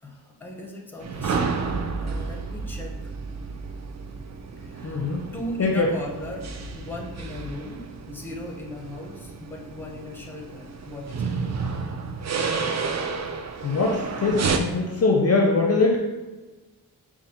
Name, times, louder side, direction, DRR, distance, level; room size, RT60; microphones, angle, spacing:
voice 1, 0.0-3.1 4.6-11.3, left 1 dB, 5° left, -1 dB, 0.7 m, -38 dB
sound 1, 1.0-14.6, right 5 dB, 45° right, 0.4 m, -31 dB
voice 2, 4.8-5.2 5.6-5.9 13.6-16.0, left 3 dB, 40° left, -1 dB, 0.5 m, -22 dB
5.1 x 2.4 x 2.9 m, 1.2 s
wide cardioid pair, 70°, 40 cm